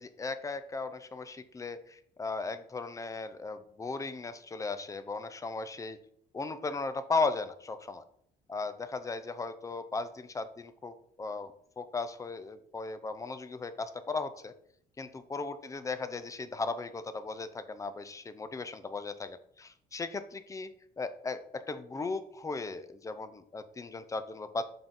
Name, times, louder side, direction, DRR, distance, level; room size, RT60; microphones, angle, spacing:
voice 1, 0.0-6.0 6.3-8.0 8.5-14.5 15.0-20.7 21.0-24.6, left 3 dB, 20° left, 11 dB, 0.5 m, -36 dB
6.8 x 3.8 x 3.8 m, 0.67 s
cardioid pair, 110°, 17 cm